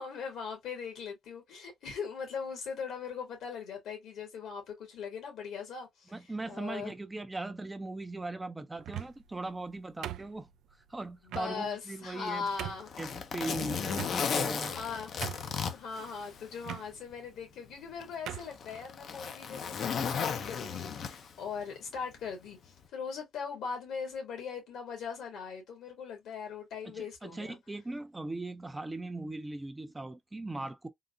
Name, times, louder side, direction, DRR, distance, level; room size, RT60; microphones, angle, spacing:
voice 1, 0.0-6.1 6.5-6.9 11.3-12.9 14.6-15.1 15.7-27.6, left 6 dB, 80° left, 1.7 m, -40 dB
voice 2, 6.1-10.5 10.9-12.5 13.0-14.7 26.9-30.9, right 2 dB, 15° right, 0.5 m, -39 dB
sound 1, 8.8-9.3 10.0-10.7 11.3-11.5 12.1-12.2 12.6-12.9 13.9-14.5 14.8-14.9 15.2-15.7 16.6-16.9 17.7-17.9 18.3-18.6, right 12 dB, 80° right, 0.3 m, -40 dB
Zipper (clothing), 12.3-16.7 17.1-17.2 18.0-21.5 22.6-22.8, left 7 dB, 60° left, 0.6 m, -35 dB
3.8 x 2.1 x 2.5 m
cardioid pair, 90°, 0 cm